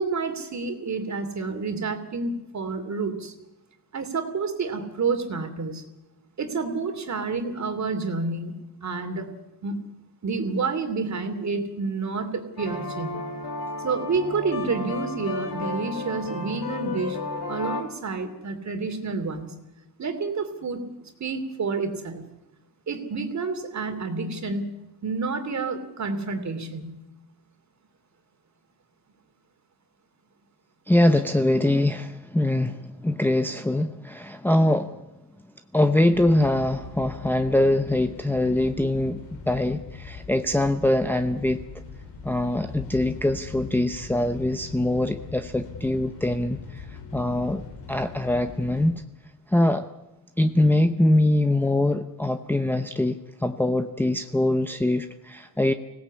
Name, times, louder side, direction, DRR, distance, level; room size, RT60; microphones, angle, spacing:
voice 1, 0.0-3.3 3.9-5.8 6.4-9.3 9.6-9.8 10.2-13.1 13.8-17.2 17.5-19.6 20.0-22.3 22.9-24.7 25.0-27.0, right 4 dB, 40° right, 7 dB, 2.9 m, -29 dB
sound 1, 12.6-17.8, left 2 dB, 70° left, 4.4 m, -33 dB
voice 2, 30.9-35.0 35.7-41.6 42.2-47.6 47.9-49.0 49.5-49.8 50.4-53.2 53.4-55.7, left 1 dB, 5° left, 6 dB, 0.8 m, -23 dB
sound 2, 36.1-48.9, left 5 dB, 90° left, 4.3 m, -41 dB
25.0 x 17.5 x 8.5 m, 0.96 s
cardioid pair, 135°, 41 cm